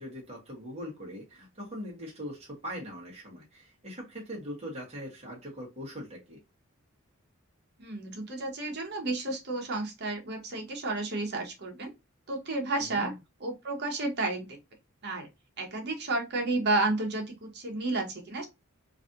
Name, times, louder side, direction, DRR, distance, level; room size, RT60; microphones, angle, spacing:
voice 1, 0.0-6.4 12.8-13.2, equal, 30° right, -3 dB, 1.2 m, -41 dB
voice 2, 7.8-11.9 12.3-13.1 13.4-14.4 15.0-15.3 15.6-18.4, right 2 dB, 50° right, 2 dB, 1.0 m, -31 dB
3.2 x 2.6 x 2.5 m, 0.23 s
head